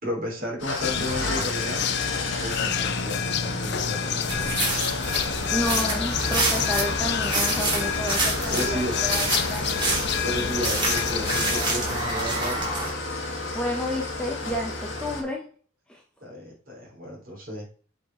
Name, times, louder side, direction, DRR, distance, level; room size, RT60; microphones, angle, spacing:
voice 1, 0.0-1.9 2.4-4.4 7.8-7.9 8.5-8.9 10.2-12.7 16.2-17.7, equal, 45° right, -2 dB, 3.4 m, -33 dB
Engine starting / Idling, 0.6-15.2, left 2 dB, 70° left, 1.7 m, -31 dB
sound 1, 0.8-11.6, left 9 dB, 55° left, 0.4 m, -29 dB
sound 2, 4.3-12.9, right 2 dB, 25° right, 2.7 m, -28 dB
voice 2, 5.5-9.9 13.5-15.4 15.9-16.0, left 1 dB, 5° left, -1 dB, 1.0 m, -31 dB
7.8 x 4.6 x 3.9 m, 0.42 s
head